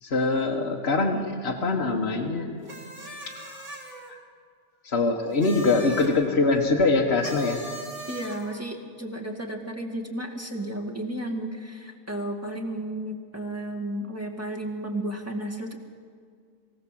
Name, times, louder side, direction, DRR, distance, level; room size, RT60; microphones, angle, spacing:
voice 1, 0.0-2.5 3.4-3.6 4.1-4.2 4.8-7.6, left 3 dB, 45° left, 0 dB, 1.5 m, -24 dB
sound 1, 2.7-4.1 5.3-6.2 7.2-8.6, right 1 dB, 65° right, 3.7 m, -40 dB
voice 2, 8.1-15.8, right 1 dB, 10° right, 0 dB, 1.9 m, -33 dB
23.0 x 16.5 x 7.6 m, 2.1 s
omnidirectional pair, 1.6 m